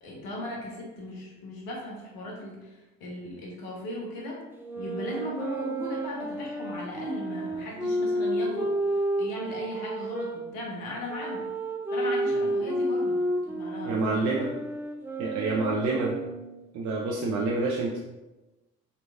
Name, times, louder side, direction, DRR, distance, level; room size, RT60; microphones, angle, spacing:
voice 1, 0.0-4.4 4.7-11.4 11.9-13.2 13.5-14.4, left 1 dB, 75° left, -3 dB, 1.1 m, -37 dB
sound 1, 4.6-10.4 11.1-16.6, right 1 dB, 5° right, 0.6 m, -31 dB
voice 2, 13.8-14.5 15.2-16.1 16.7-18.0, right 3 dB, 55° right, -2 dB, 0.6 m, -27 dB
3.8 x 3.0 x 2.3 m, 1.1 s
hypercardioid pair, 50°, 35 cm